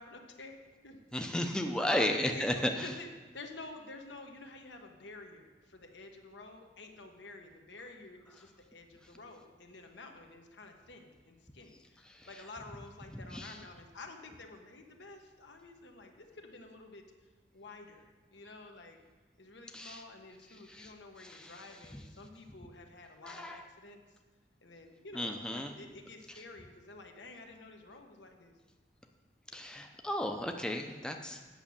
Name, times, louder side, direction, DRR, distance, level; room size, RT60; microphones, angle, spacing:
voice 1, 0.0-1.0 1.3-2.1 2.3-2.5 2.8-3.1 3.3-17.0 17.5-19.0 19.4-24.0 24.6-28.5, left 3 dB, 75° left, 4 dB, 1.2 m, -50 dB
voice 2, 1.1-2.9 12.1-12.3 13.1-13.6 19.7-20.0 20.6-20.9 21.2-22.0 23.2-23.6 25.1-25.7 29.5-31.5, left 1 dB, 5° left, 4 dB, 0.6 m, -34 dB
8.9 x 6.2 x 7.2 m, 1.3 s
head